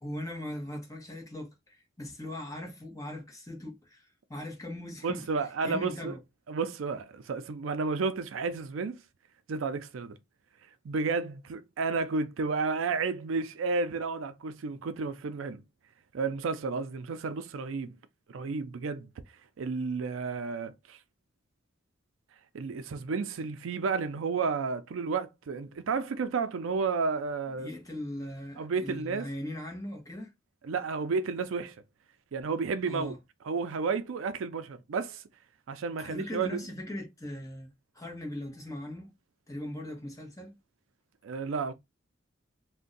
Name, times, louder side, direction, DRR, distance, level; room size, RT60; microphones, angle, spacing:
voice 1, 0.0-4.0 4.3-5.2 5.6-6.2 27.5-30.3 32.8-33.2 36.0-39.1 39.5-40.6, left 1 dB, 15° left, 0.9 m, -39 dB
voice 2, 5.0-6.1 6.5-9.0 9.5-10.2 10.8-15.6 16.1-18.0 18.3-19.1 19.6-21.0 22.5-27.7 28.6-29.3 30.6-31.8 32.3-33.1 33.5-35.2 35.7-36.6 41.2-41.7, right 4 dB, 80° right, 0.4 m, -32 dB
2.5 x 2.2 x 3.8 m
head